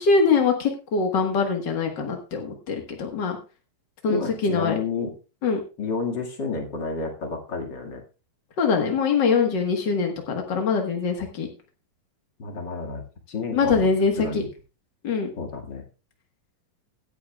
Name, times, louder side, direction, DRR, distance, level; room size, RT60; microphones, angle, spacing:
voice 1, 0.0-3.4 4.0-4.8 5.4-5.6 8.6-11.5 13.5-14.4 15.0-15.3, left 5 dB, 65° left, 3 dB, 1.0 m, -23 dB
voice 2, 4.1-5.1 5.8-8.0 12.4-13.0 13.3-13.9 14.2-14.5 15.4-15.8, left 4 dB, 35° left, 2 dB, 2.0 m, -30 dB
16.5 x 10.5 x 2.3 m, 0.32 s
omnidirectional pair, 4.3 m